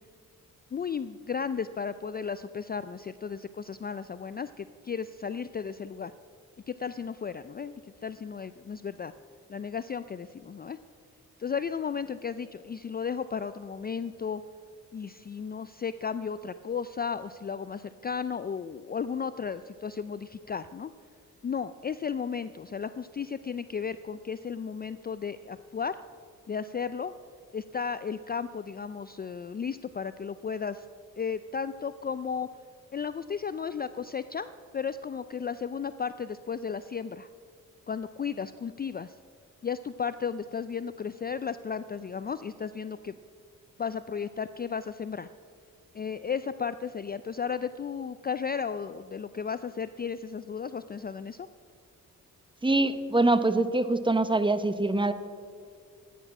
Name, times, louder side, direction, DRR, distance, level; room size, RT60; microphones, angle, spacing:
voice 1, 0.7-6.1 6.7-9.1 9.5-10.8 11.4-14.4 14.9-20.9 21.4-26.0 26.5-27.1 27.5-30.8 31.2-32.5 32.9-34.5 34.7-37.3 37.9-39.2 39.6-43.1 43.8-45.3 45.9-51.5, left 6 dB, 30° left, 13 dB, 0.4 m, -34 dB
voice 2, 52.6-55.1, right 2 dB, 15° right, 11 dB, 0.9 m, -24 dB
14.0 x 10.0 x 6.0 m, 2.2 s
cardioid pair, 70°, 34 cm